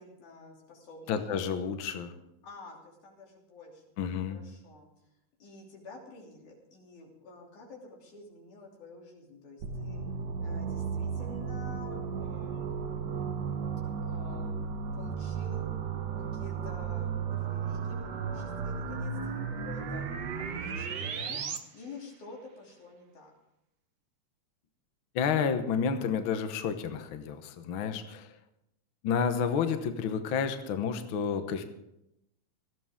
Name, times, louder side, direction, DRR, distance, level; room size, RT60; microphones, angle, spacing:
voice 1, 0.0-1.3 2.4-4.9 5.4-10.0 10.4-12.7 14.0-14.7 14.9-15.7 16.2-21.4 21.7-23.3, left 2 dB, 85° left, -2 dB, 4.6 m, -49 dB
voice 2, 1.1-2.1 4.0-4.4 25.1-28.3 29.0-31.6, left 6 dB, 60° left, 7 dB, 1.5 m, -30 dB
sound 1, 9.6-21.6, right 6 dB, 80° right, 0.9 m, -34 dB
19.0 x 14.0 x 3.7 m, 0.84 s
omnidirectional pair, 3.4 m